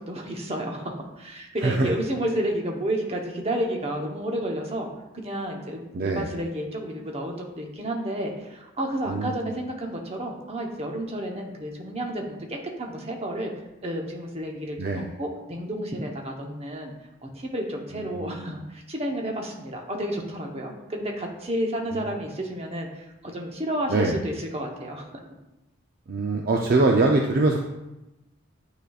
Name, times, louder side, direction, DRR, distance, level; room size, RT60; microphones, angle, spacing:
voice 1, 0.0-4.9 5.1-13.5 13.8-16.9 17.2-25.0, right 1 dB, 30° right, 1 dB, 0.9 m, -31 dB
voice 2, 1.6-1.9 5.9-6.3 9.1-9.5 14.8-15.1 17.9-18.5 21.9-22.1 23.9-24.2 26.1-27.7, right 3 dB, 45° right, 1 dB, 0.5 m, -24 dB
8.9 x 5.0 x 2.4 m, 0.97 s
head